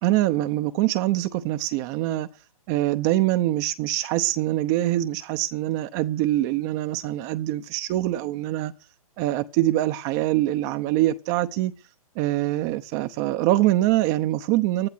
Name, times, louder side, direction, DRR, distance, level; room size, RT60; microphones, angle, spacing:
voice 1, 0.0-2.3 2.7-8.7 9.2-11.7 12.2-14.9, right 15 dB, 30° right, 0.8 m, -24 dB
13.0 x 11.5 x 8.0 m
hypercardioid pair, 135°, 19 cm